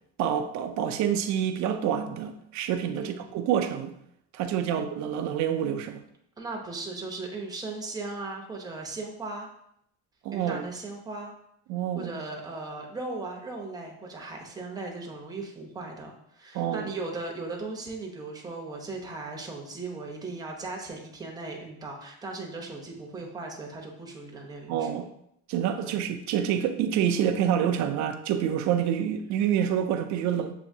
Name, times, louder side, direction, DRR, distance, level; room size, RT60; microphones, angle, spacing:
voice 1, 0.2-3.9 4.3-6.0 10.2-10.6 11.7-12.2 16.5-16.9 24.7-25.1 25.5-30.5, right 9 dB, 50° right, 7 dB, 0.5 m, -27 dB
voice 2, 4.6-4.9 6.4-9.5 10.3-11.3 11.9-25.0 25.8-26.0, right 3 dB, 10° right, 0 dB, 0.8 m, -37 dB
7.0 x 2.8 x 2.7 m, 0.75 s
cardioid pair, 145°, 35 cm